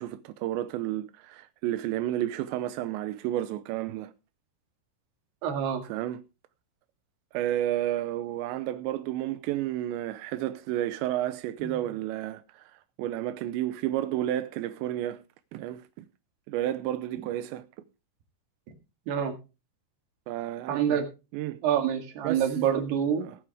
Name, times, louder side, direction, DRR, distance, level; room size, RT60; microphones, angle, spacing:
voice 1, 0.0-4.1 5.8-6.2 7.3-12.7 13.0-15.2 15.5-16.1 16.5-17.6 20.3-21.0 21.3-21.6 22.2-22.5 23.2-23.4, right 13 dB, 80° right, 2.7 m, -31 dB
voice 2, 5.4-5.8 11.6-11.7 19.1-19.3 20.7-21.1 21.6-23.3, right 9 dB, 60° right, 3.8 m, -26 dB
18.5 x 9.8 x 3.5 m
omnidirectional pair, 5.8 m